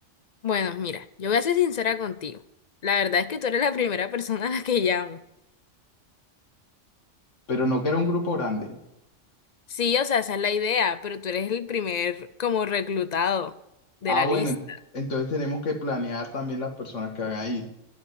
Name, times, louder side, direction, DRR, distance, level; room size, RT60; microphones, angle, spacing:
voice 1, 0.4-2.4 2.8-5.2 9.7-13.5 14.0-14.5, left 7 dB, 45° left, 0.6 m, -26 dB
voice 2, 7.5-8.8 14.1-14.6 14.9-17.7, left 2 dB, 80° left, 2.3 m, -27 dB
12.0 x 7.1 x 9.7 m
omnidirectional pair, 1.3 m